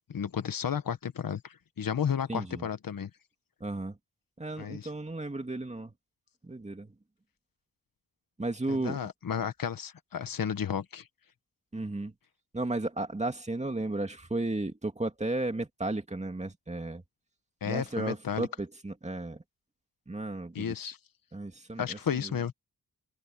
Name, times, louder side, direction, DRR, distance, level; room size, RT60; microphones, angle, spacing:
voice 1, 0.1-3.1 4.6-4.9 8.7-11.1 17.6-18.5 20.5-21.0 21.8-22.5, left 8 dB, 60° left, 1.2 m, -33 dB
voice 2, 2.3-2.7 3.6-4.0 4.4-5.9 6.4-7.0 8.4-9.0 11.7-12.1 12.5-17.0 17.6-19.4 20.1-20.7 21.3-22.4, right 2 dB, 15° right, 2.4 m, -34 dB
open air
wide cardioid pair, 125°, 38 cm